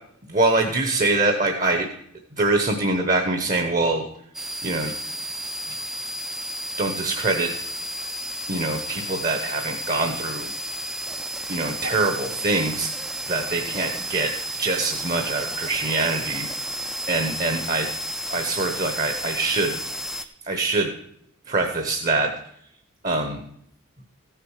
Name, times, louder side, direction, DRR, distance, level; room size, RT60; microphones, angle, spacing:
voice 1, 0.3-1.9 2.4-4.0 4.6-4.9 5.7-5.8 6.8-7.5 8.5-10.5 11.5-12.9 13.3-14.3 14.6-16.5 17.1-17.9 18.3-19.8 20.2-20.9 21.5-22.3 23.0-23.4, right 2 dB, 35° right, 5 dB, 0.9 m, -24 dB
sound 1, 4.3-20.2, right 1 dB, ahead, 0.4 m, -32 dB
15.0 x 6.8 x 4.8 m, 0.71 s
head